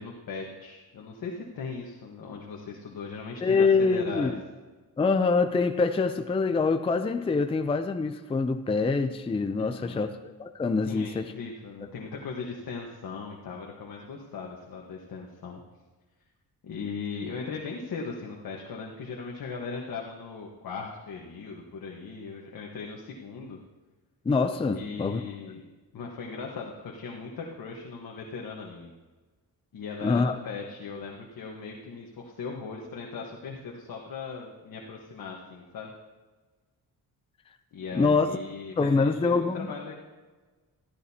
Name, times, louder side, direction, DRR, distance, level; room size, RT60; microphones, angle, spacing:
voice 1, 0.0-4.3 9.6-10.1 10.9-15.6 16.6-23.6 24.7-25.6 25.9-28.9 29.7-35.9 37.7-39.9, left 5 dB, 65° left, -1 dB, 1.4 m, -38 dB
voice 2, 3.4-4.4 5.0-10.1 10.4-11.3 24.3-25.2 30.0-30.4 37.9-38.3 38.8-39.7, left 4 dB, 15° left, 8 dB, 0.4 m, -25 dB
15.0 x 13.5 x 2.8 m, 1.3 s
wide cardioid pair, 155°, 37 cm